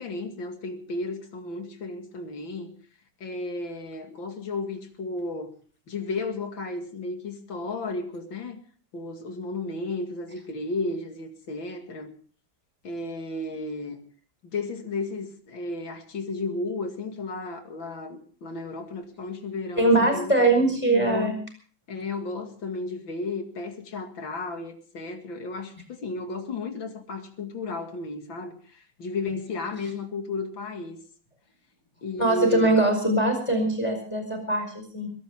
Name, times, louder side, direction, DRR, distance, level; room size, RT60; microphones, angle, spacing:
voice 1, 0.0-2.7 3.2-5.5 5.9-8.6 8.9-12.1 12.8-14.0 14.4-20.3 20.8-21.3 21.9-31.0 32.0-32.8, left 3 dB, 85° left, 5 dB, 3.0 m, -33 dB
voice 2, 19.8-21.4 32.2-35.1, right 2 dB, 15° left, 5 dB, 5.1 m, -22 dB
22.0 x 17.5 x 3.6 m, 0.42 s
omnidirectional pair, 2.1 m